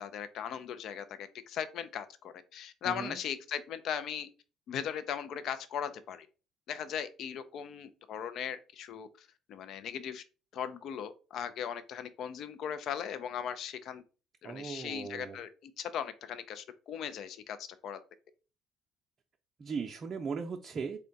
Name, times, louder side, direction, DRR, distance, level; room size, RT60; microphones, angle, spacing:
voice 1, 0.0-4.3 4.7-6.3 6.7-10.2 10.5-14.0 14.4-18.0, left 8 dB, 65° left, 0.4 m, -38 dB
voice 2, 2.8-3.2 14.4-15.4 19.6-21.0, right 5 dB, 40° right, 0.5 m, -38 dB
3.6 x 2.2 x 3.9 m
hypercardioid pair, 65°, 0 cm